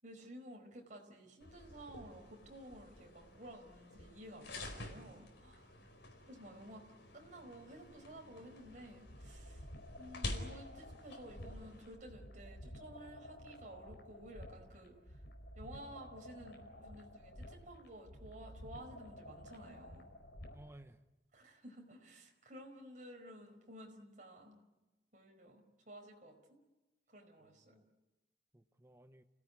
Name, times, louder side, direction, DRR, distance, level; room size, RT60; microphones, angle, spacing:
voice 1, 0.0-5.7 6.3-6.8 7.1-9.7 10.0-15.2 15.5-20.1 21.3-24.6 25.1-26.6 27.1-27.8, right 1 dB, 45° right, 2 dB, 5.0 m, -53 dB
sound 1, 1.4-12.0, left 2 dB, 85° left, 4.5 m, -49 dB
voice 2, 5.6-6.1 20.5-21.0 27.4-27.8 28.5-29.2, right 1 dB, 15° right, 7 dB, 0.9 m, -59 dB
sound 2, 8.7-20.7, equal, 65° left, 4.4 m, -53 dB
29.5 x 17.0 x 9.6 m, 1.1 s
head